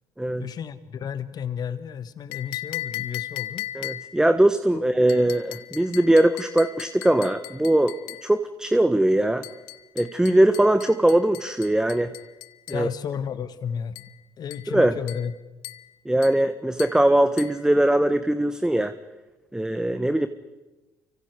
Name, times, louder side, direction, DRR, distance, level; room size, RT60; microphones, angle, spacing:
voice 1, 0.4-3.7 4.7-4.8 12.7-14.0 14.4-15.3, left 7 dB, 50° left, 13 dB, 1.6 m, -32 dB
sound 1, 2.3-4.3 5.1-8.3 9.4-12.9 14.0-14.2 14.5-14.8 15.1-15.4 15.6-15.9 16.2-16.5 16.8-17.0 17.4-17.6, left 16 dB, 75° left, 0.9 m, -38 dB
voice 2, 3.7-8.0 8.2-9.5 10.0-12.1 12.7-12.9 14.7-15.0 16.0-18.9 19.5-20.3, right 1 dB, 10° right, 10 dB, 1.3 m, -21 dB
29.5 x 24.5 x 4.9 m, 1.1 s
hypercardioid pair, 55°, 9 cm